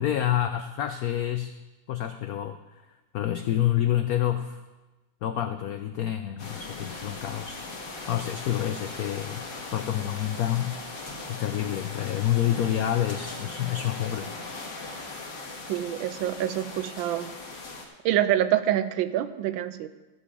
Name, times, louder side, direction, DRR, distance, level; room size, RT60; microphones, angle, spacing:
voice 1, 0.0-1.5 1.9-2.6 3.1-4.6 5.2-7.6 8.1-9.5 9.7-10.8 11.3-14.3, left 11 dB, 90° left, 8 dB, 0.8 m, -28 dB
Lightning Storm, 6.4-17.9, left 3 dB, 65° left, 2.2 m, -39 dB
voice 2, 15.7-17.3 18.0-19.9, right 12 dB, 85° right, 12 dB, 1.4 m, -26 dB
14.0 x 7.3 x 4.9 m, 1.1 s
omnidirectional pair, 2.1 m